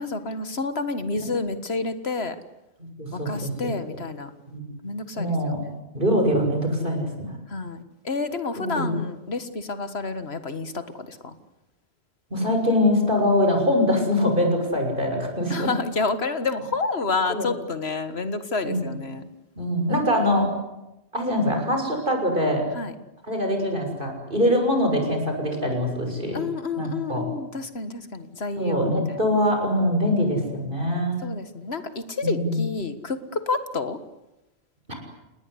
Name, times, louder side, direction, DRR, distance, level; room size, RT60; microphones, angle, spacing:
voice 1, 0.0-2.4 3.1-4.3 4.8-5.3 5.6-5.8 7.5-11.3 15.5-19.3 22.8-22.9 26.3-29.2 31.2-34.0, left 3 dB, 70° left, 10 dB, 2.0 m, -29 dB
voice 2, 3.0-4.0 4.5-4.6 5.2-5.6 5.9-7.4 8.5-8.9 12.3-15.7 17.3-17.5 18.6-18.9 19.6-20.5 21.1-22.7 23.2-26.4 26.8-27.3 28.6-31.2 32.2-32.6 34.9-35.0, left 1 dB, 55° right, 3 dB, 6.8 m, -23 dB
29.5 x 19.5 x 9.9 m, 0.97 s
omnidirectional pair, 1.1 m